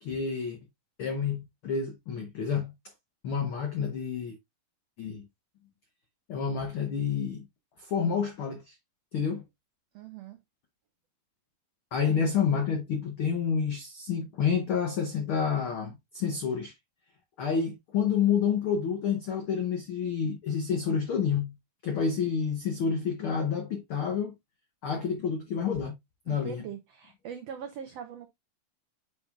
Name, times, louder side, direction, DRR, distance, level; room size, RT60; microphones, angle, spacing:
voice 1, 0.0-0.6 1.0-2.7 3.2-4.3 5.0-5.2 6.3-7.5 7.8-8.7 9.1-9.4 11.9-16.7 17.4-21.5 21.8-24.3 24.8-25.9 26.3-26.7, left 6 dB, 90° left, 1.1 m, -29 dB
voice 2, 9.9-10.4 26.3-28.3, right 8 dB, 85° right, 1.4 m, -41 dB
7.6 x 5.3 x 2.4 m
omnidirectional pair, 3.9 m